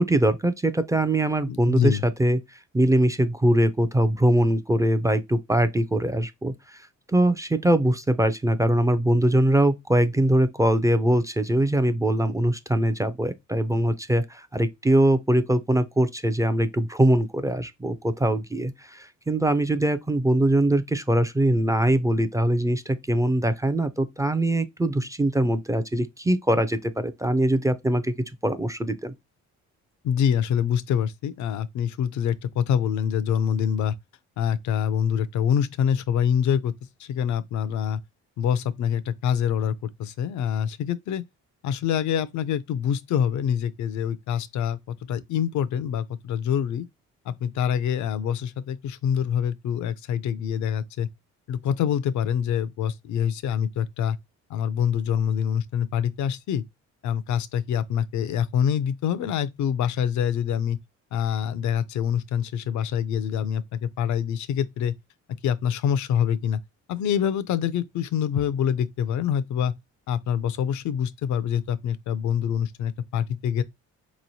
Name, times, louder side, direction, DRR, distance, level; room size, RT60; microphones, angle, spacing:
voice 1, 0.0-6.8 7.1-28.1 28.4-29.1, right 1 dB, 10° right, 0.4 m, -22 dB
voice 2, 1.5-2.0 30.0-33.9 34.4-36.7 37.0-38.0 38.4-41.2 41.6-46.9 47.3-51.1 51.5-54.2 54.5-56.6 57.0-60.8 61.1-64.9 65.4-66.6 66.9-69.7 70.1-73.6, left 8 dB, 70° left, 0.5 m, -25 dB
4.1 x 3.0 x 2.7 m
cardioid pair, 90°, 30 cm